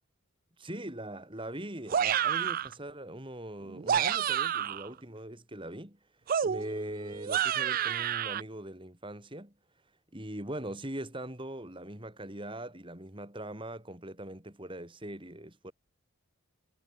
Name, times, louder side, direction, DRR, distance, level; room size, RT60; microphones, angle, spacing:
voice 1, 0.6-6.0 6.4-9.5 10.1-15.7, right 1 dB, 20° right, 3.4 m, -41 dB
sound 1, 1.9-2.7 3.7-4.9 6.3-8.4, right 9 dB, 40° right, 0.3 m, -29 dB
head